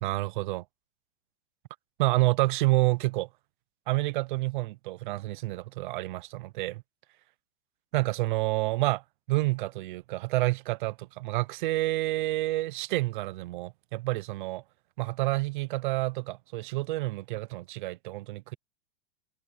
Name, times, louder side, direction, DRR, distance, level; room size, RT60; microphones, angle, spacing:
voice 1, 0.0-0.6 2.0-3.3 3.9-6.8 7.9-9.0 9.3-14.6 15.0-18.5, right 20 dB, 45° right, 0.5 m, -29 dB
supercardioid pair, 170°, 35 cm